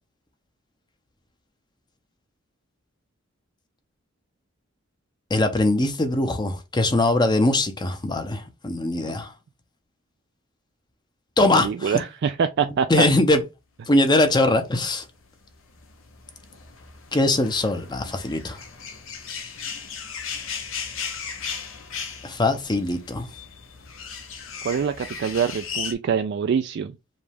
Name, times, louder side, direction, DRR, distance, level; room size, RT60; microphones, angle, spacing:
voice 1, 5.3-9.3 11.4-12.0 12.9-13.4 13.9-15.0 17.1-18.6 22.2-23.3, left 2 dB, 20° left, 0.7 m, -21 dB
voice 2, 11.5-13.1 24.6-26.9, right 7 dB, 55° right, 0.3 m, -25 dB
sound 1, 14.8-25.9, left 6 dB, 85° left, 0.9 m, -36 dB
5.2 x 2.3 x 3.4 m
head